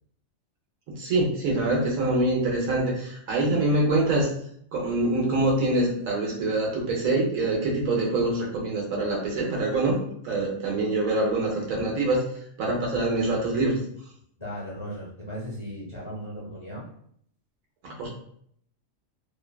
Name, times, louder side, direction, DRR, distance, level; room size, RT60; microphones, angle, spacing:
voice 1, 0.9-4.3 4.7-10.0 10.2-12.2 12.6-13.8 17.8-18.1, right 2 dB, 80° right, -2 dB, 1.2 m, -25 dB
voice 2, 14.4-16.9, equal, 30° left, -6 dB, 0.6 m, -37 dB
2.9 x 2.2 x 2.2 m, 0.66 s
omnidirectional pair, 1.4 m